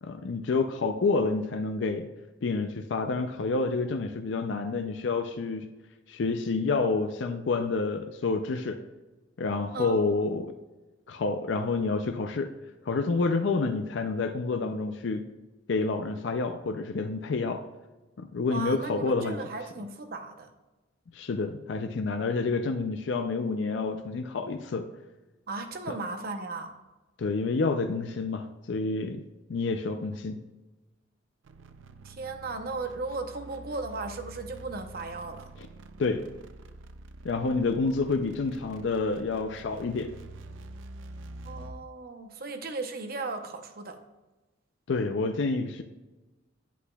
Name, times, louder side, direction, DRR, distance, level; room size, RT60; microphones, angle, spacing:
voice 1, 0.0-2.1 2.4-5.7 6.1-8.8 9.4-10.5 11.1-12.6 12.9-15.2 15.7-17.6 18.2-19.4 21.1-24.9 25.9-26.0 27.2-29.2 29.5-30.4 36.0-36.3 37.2-40.2 44.9-45.8, left 3 dB, 65° left, 6 dB, 0.4 m, -28 dB
voice 2, 18.5-20.5 25.5-26.7 32.0-35.5 41.4-44.0, right 3 dB, 50° right, 6 dB, 0.8 m, -36 dB
sound 1, 31.4-41.9, right 2 dB, 75° right, 0.4 m, -47 dB
8.3 x 8.1 x 2.3 m, 1.1 s
head